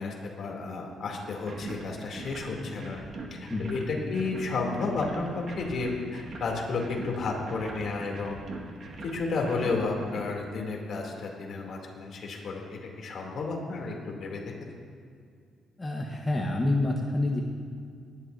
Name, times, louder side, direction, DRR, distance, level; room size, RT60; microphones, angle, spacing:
voice 1, 0.0-3.0 3.3-8.4 9.0-14.5, left 3 dB, 60° left, 0 dB, 2.9 m, -32 dB
sound 1, 1.4-10.3, right 2 dB, 55° right, 1.7 m, -42 dB
voice 2, 3.5-3.8 15.8-17.4, left 2 dB, 20° left, -1 dB, 1.2 m, -27 dB
19.5 x 11.5 x 2.7 m, 2.3 s
cardioid pair, 90°, 0 cm